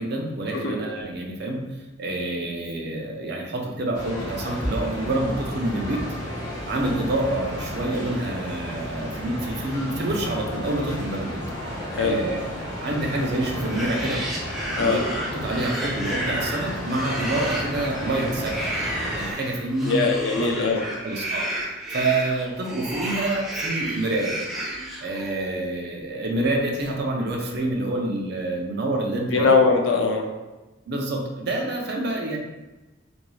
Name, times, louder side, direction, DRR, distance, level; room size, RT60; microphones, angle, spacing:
voice 1, 0.0-1.6 2.0-6.0 6.6-11.4 12.0-14.2 14.8-15.0 15.3-18.7 19.1-20.0 20.3-20.5 21.0-24.4 25.0-29.5 30.9-32.4, right 2 dB, 60° right, 0 dB, 0.5 m, -27 dB
sound 1, 3.9-19.3, equal, 25° left, 1.0 m, -32 dB
voice 2, 11.9-12.2 14.8-15.0 19.8-20.9 29.3-30.3, left 4 dB, 85° left, 2 dB, 0.5 m, -21 dB
sound 2, 13.5-25.5, right 1 dB, ahead, 0.4 m, -32 dB
2.6 x 2.3 x 3.1 m, 1.1 s
head